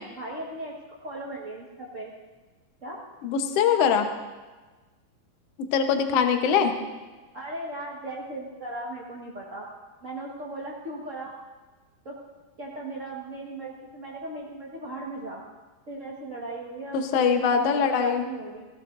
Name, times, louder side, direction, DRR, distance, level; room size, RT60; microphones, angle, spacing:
voice 1, 0.1-2.1 2.8-3.0 7.3-9.7 10.0-11.3 12.0-12.2 12.6-15.4 15.9-18.7, right 2 dB, 60° right, -4 dB, 0.7 m, -37 dB
voice 2, 3.2-4.1 5.7-6.7 16.9-18.2, left 6 dB, 65° left, 5 dB, 1.6 m, -22 dB
18.5 x 17.5 x 2.6 m, 1.3 s
omnidirectional pair, 4.1 m